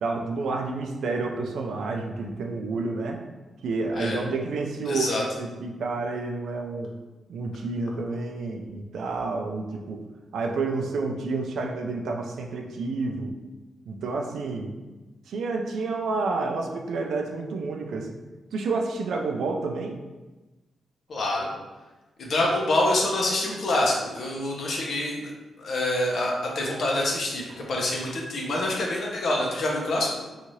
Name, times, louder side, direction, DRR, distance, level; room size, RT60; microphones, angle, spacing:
voice 1, 0.0-3.2 3.6-6.9 7.3-10.0 10.3-13.3 13.9-14.7 15.3-18.1 18.5-20.0, right 3 dB, 80° right, 2 dB, 0.4 m, -29 dB
voice 2, 4.9-5.2 21.1-21.5 22.2-25.3 25.6-30.1, left 1 dB, 50° left, -2 dB, 0.6 m, -26 dB
2.7 x 2.4 x 3.0 m, 1.2 s
wide cardioid pair, 175°, 0 cm